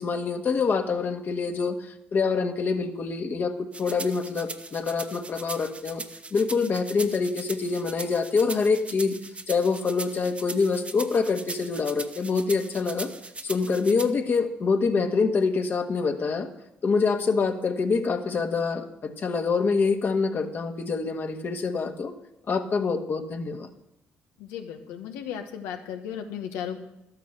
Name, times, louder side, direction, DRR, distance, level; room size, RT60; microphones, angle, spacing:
voice 1, 0.0-6.0 6.3-9.1 9.5-13.1 13.4-16.5 16.8-22.1 22.5-23.7, left 4 dB, 50° left, 5 dB, 1.7 m, -26 dB
sound 1, 3.7-14.1, right 3 dB, 25° right, 1.0 m, -39 dB
voice 2, 24.4-26.8, left 8 dB, 90° left, 5 dB, 1.4 m, -35 dB
12.5 x 9.1 x 6.8 m, 0.86 s
supercardioid pair, 70°, 5 cm